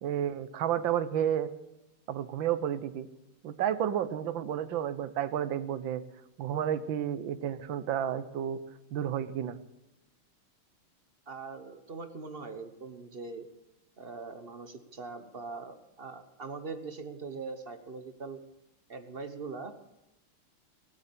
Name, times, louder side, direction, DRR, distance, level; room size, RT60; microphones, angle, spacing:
voice 1, 0.0-1.5 2.1-3.1 3.4-6.0 6.4-8.6 8.9-9.6, right 10 dB, 65° right, 14 dB, 1.6 m, -31 dB
voice 2, 11.3-13.5 14.0-18.4 18.9-19.7, right 4 dB, 40° right, 9 dB, 0.9 m, -41 dB
19.5 x 8.7 x 8.5 m, 0.95 s
omnidirectional pair, 2.4 m